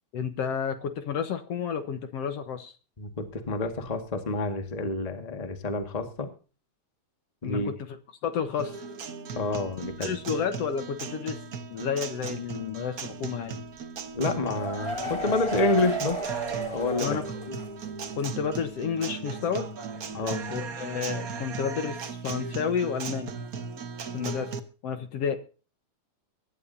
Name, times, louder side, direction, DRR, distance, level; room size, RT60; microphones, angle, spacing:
voice 1, 0.1-2.7 7.4-7.7 8.2-8.8 10.0-11.4 11.7-13.6 17.0-17.2 18.1-19.7 20.5-23.3 24.1-24.5 24.8-25.4, left 7 dB, 60° left, 9 dB, 1.9 m, -31 dB
voice 2, 3.0-6.3 7.4-7.7 9.3-10.1 14.1-16.2 16.7-17.1 17.5-17.6 20.1-20.4, left 2 dB, 20° left, 6 dB, 1.2 m, -28 dB
Guitar, 8.6-24.6, right 5 dB, 60° right, 0.9 m, -37 dB
sound 1, 14.2-17.8 18.1-18.2 18.6-18.7, right 2 dB, 10° right, 2.7 m, -34 dB
24.0 x 11.0 x 2.7 m, 0.37 s
omnidirectional pair, 3.5 m